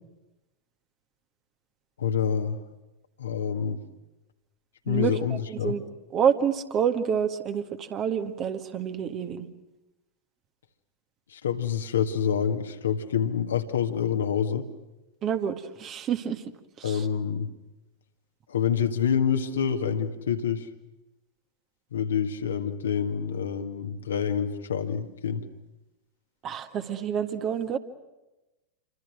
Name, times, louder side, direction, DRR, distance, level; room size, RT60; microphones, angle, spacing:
voice 1, 2.0-2.6 3.2-3.8 4.9-5.8 11.3-14.7 16.8-17.5 18.5-20.7 21.9-25.4, left 7 dB, 65° left, 5 dB, 1.9 m, -27 dB
voice 2, 4.9-5.8 6.1-9.5 15.2-16.4 16.8-17.1 26.4-27.8, right 8 dB, 30° right, 8 dB, 1.8 m, -28 dB
28.5 x 25.0 x 6.4 m, 1.0 s
figure-of-eight pair, 90°, 0 cm